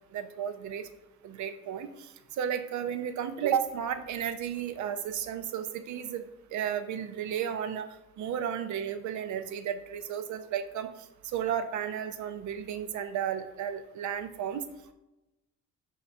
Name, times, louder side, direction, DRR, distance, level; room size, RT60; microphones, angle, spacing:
voice 1, 0.1-0.9 1.2-7.9 8.2-10.9 11.3-14.7, right 9 dB, 75° right, 9 dB, 0.7 m, -33 dB
5.6 x 3.2 x 5.3 m, 0.97 s
cardioid pair, 100°, 29 cm